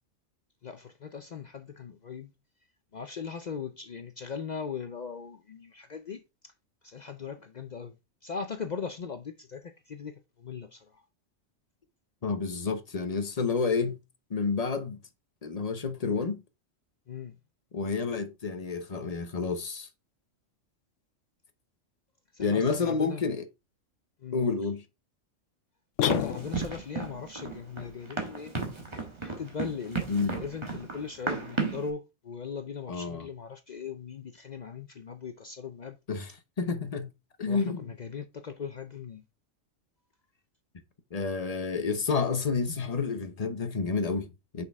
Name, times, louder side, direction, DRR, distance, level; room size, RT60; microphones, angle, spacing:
voice 1, 0.6-2.3 2.9-6.2 6.8-8.0 8.2-11.0 17.1-17.4 22.3-23.2 24.2-24.6 26.0-28.6 29.2-36.0 37.5-39.2, left 6 dB, 55° left, 0.5 m, -39 dB
voice 2, 12.2-14.0 14.3-15.0 15.4-16.4 17.7-19.9 22.4-23.4 24.3-24.8 30.1-30.4 32.9-33.3 36.1-37.1 37.4-37.9 41.1-44.6, left 4 dB, 35° left, 0.8 m, -29 dB
sound 1, 26.0-26.9, left 11 dB, 75° left, 1.0 m, -29 dB
Run, 26.1-31.9, right 4 dB, 20° right, 1.5 m, -34 dB
6.4 x 5.4 x 3.5 m
omnidirectional pair, 1.3 m